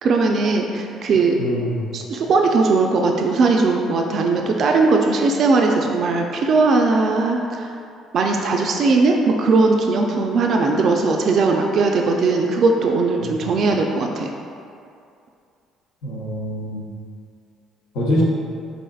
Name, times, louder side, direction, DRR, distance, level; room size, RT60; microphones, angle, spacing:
voice 1, 0.0-1.4 1.9-7.7 8.1-14.3, right 3 dB, 55° right, 2 dB, 0.3 m, -19 dB
voice 2, 1.4-1.8 13.2-13.5 16.0-16.9 17.9-18.2, equal, 85° left, -4 dB, 0.8 m, -25 dB
3.7 x 3.4 x 2.3 m, 2.5 s
supercardioid pair, 85°, 0 cm